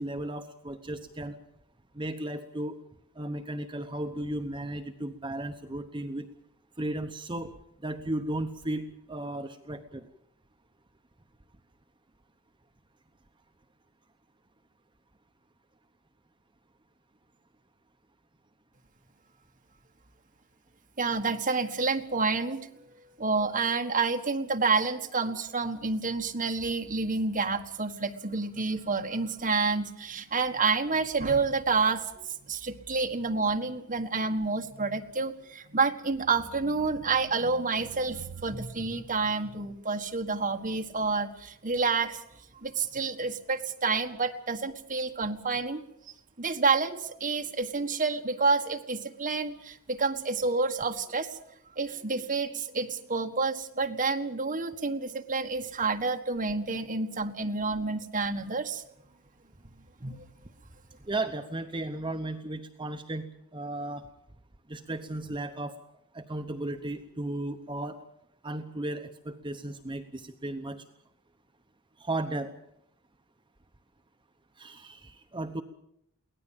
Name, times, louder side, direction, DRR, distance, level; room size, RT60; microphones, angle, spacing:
voice 1, 0.0-1.3 1.9-2.7 3.2-6.3 6.8-7.5 7.8-10.1 61.0-64.0 64.7-65.7 66.1-68.0 68.4-70.8 72.0-72.5 74.6-75.6, right 1 dB, 20° right, 6 dB, 0.9 m, -35 dB
voice 2, 21.0-22.7 23.2-42.2 42.6-45.8 46.4-51.4 51.7-58.8 60.0-60.2, right 4 dB, 40° right, 4 dB, 1.7 m, -29 dB
23.5 x 17.5 x 7.4 m, 0.77 s
head